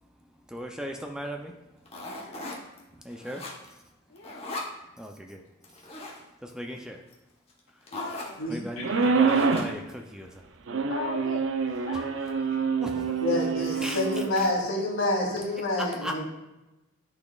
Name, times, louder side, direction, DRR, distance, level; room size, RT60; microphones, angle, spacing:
voice 1, 0.2-2.5 2.9-3.9 5.0-7.0 7.7-7.9 8.5-10.6 11.9-12.0 12.8-13.1 13.7-14.5 15.8-16.2, equal, 5° right, 2 dB, 0.4 m, -39 dB
sound 1, 1.9-2.8 3.1-3.8 4.2-4.7 5.6-6.2 7.1-7.2 7.5-7.6 7.9-8.4 9.2-9.9, left 2 dB, 30° left, 1.0 m, -38 dB
voice 2, 2.2-2.6 4.1-4.5 7.9-8.4 10.9-11.4 11.8-12.8 13.2-13.6, left 4 dB, 60° left, -1 dB, 0.6 m, -40 dB
voice 3, 8.4-9.1 13.2-16.2, left 1 dB, 80° left, -3 dB, 2.2 m, -28 dB
sound 2, 8.8-9.7 10.7-14.3, right 5 dB, 65° right, 0.5 m, -26 dB
11.5 x 4.2 x 2.3 m, 1.0 s
head